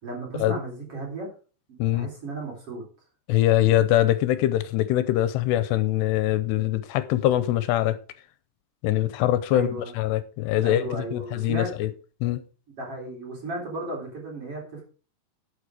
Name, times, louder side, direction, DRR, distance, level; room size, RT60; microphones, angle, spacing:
voice 1, 0.0-1.3 1.9-2.8 9.5-9.9 10.6-11.7 12.7-14.8, right 2 dB, 35° right, 4.3 m, -34 dB
voice 2, 3.3-8.0 8.8-9.7 10.0-11.9 12.2-12.4, left 13 dB, 85° left, 2.8 m, -23 dB
11.5 x 7.3 x 4.8 m
omnidirectional pair, 4.9 m